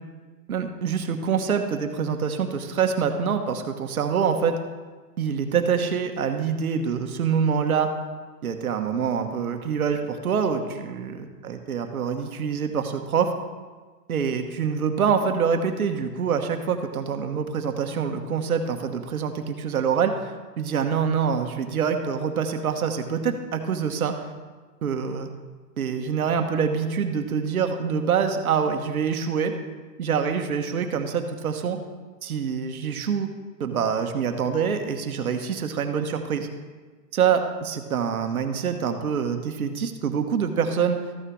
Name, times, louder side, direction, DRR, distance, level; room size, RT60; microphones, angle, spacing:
voice 1, 0.5-4.6 5.2-7.9 8.4-13.3 14.1-24.3 24.8-25.3 25.8-29.5 30.0-31.8 32.2-33.3 33.6-36.5 37.1-41.0, right 6 dB, 60° right, 6 dB, 1.3 m, -25 dB
13.5 x 6.5 x 4.7 m, 1.4 s
hypercardioid pair, 180°, 48 cm